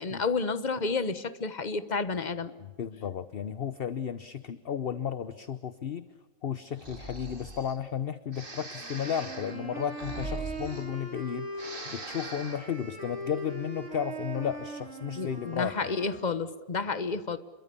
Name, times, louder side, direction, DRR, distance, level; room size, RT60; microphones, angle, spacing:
voice 1, 0.0-2.5 15.2-17.4, left 4 dB, 35° left, 13 dB, 1.3 m, -30 dB
voice 2, 2.6-6.1 6.4-15.9, left 8 dB, 50° left, 13 dB, 1.0 m, -34 dB
Breathing, 6.7-7.8 8.3-11.2 11.5-12.7, right 2 dB, 40° right, 2.6 m, -41 dB
sound 1, 8.8-16.3, right 2 dB, 65° right, 5.6 m, -40 dB
28.5 x 23.0 x 7.0 m, 1.3 s
omnidirectional pair, 1.4 m